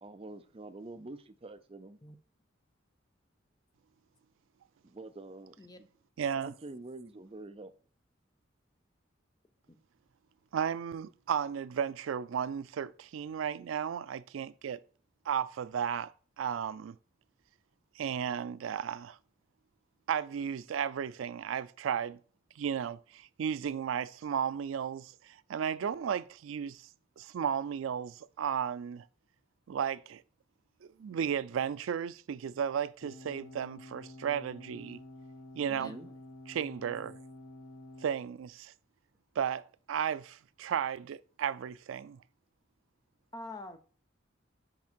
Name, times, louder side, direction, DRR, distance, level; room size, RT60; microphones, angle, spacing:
voice 1, 0.0-2.0 4.8-5.9 6.4-7.7 35.7-36.1, right 2 dB, 30° right, 0.5 m, -46 dB
voice 2, 6.2-6.5 10.5-14.8 15.3-16.1 16.4-17.0 18.0-19.2 20.1-22.2 22.6-26.8 27.2-29.0 29.7-30.2 31.0-35.0 35.5-35.9 36.5-37.1 38.0-38.7 39.4-42.2, right 8 dB, 85° right, 0.4 m, -34 dB
sound 1, 33.0-38.1, left 1 dB, 70° left, 0.9 m, -50 dB
voice 3, 35.8-36.1 43.3-43.8, left 2 dB, 20° left, 0.6 m, -46 dB
6.0 x 5.3 x 4.3 m
head